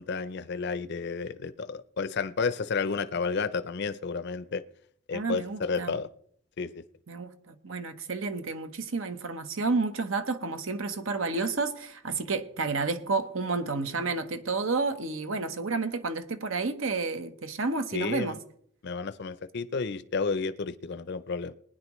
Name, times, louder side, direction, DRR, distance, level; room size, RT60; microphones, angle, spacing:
voice 1, 0.0-4.6 5.1-6.1 6.6-6.8 17.9-18.4 18.8-21.5, left 4 dB, 55° left, 0.5 m, -31 dB
voice 2, 5.1-5.9 7.1-18.4, right 3 dB, 75° right, 1.0 m, -30 dB
20.0 x 10.0 x 3.1 m
head